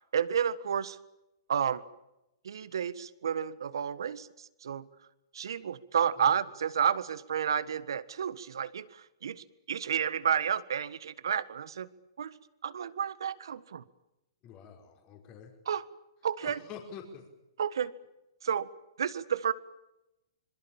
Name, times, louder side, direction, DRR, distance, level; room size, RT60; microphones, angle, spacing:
voice 1, 0.1-1.0 1.5-1.8 2.4-4.8 5.3-11.9 12.2-12.3 12.6-13.8 15.6-15.9 16.2-16.6 17.6-17.9 18.4-18.7 19.0-19.5, right 8 dB, 75° right, 16 dB, 1.6 m, -31 dB
voice 2, 14.4-15.5 16.4-17.3, left 7 dB, 35° left, 2 dB, 5.2 m, -47 dB
26.0 x 23.0 x 7.3 m, 0.91 s
hypercardioid pair, 135°, 2 cm